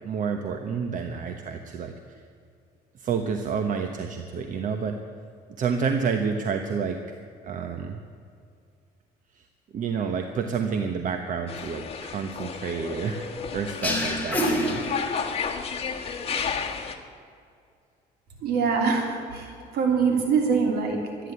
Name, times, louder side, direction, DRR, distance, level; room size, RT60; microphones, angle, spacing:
voice 1, 0.0-2.2 3.0-5.0 5.6-7.0 7.4-8.0 9.4-9.5 9.7-15.2, right 6 dB, 50° right, 6 dB, 1.1 m, -29 dB
sound 1, 11.5-16.9, left 6 dB, 35° left, 1.6 m, -32 dB
sound 2, 13.8-15.6, equal, 10° left, 3.2 m, -27 dB
voice 2, 18.4-21.3, right 5 dB, 70° right, 1 dB, 3.3 m, -24 dB
13.0 x 10.0 x 9.8 m, 2.4 s
cardioid pair, 110°, 17 cm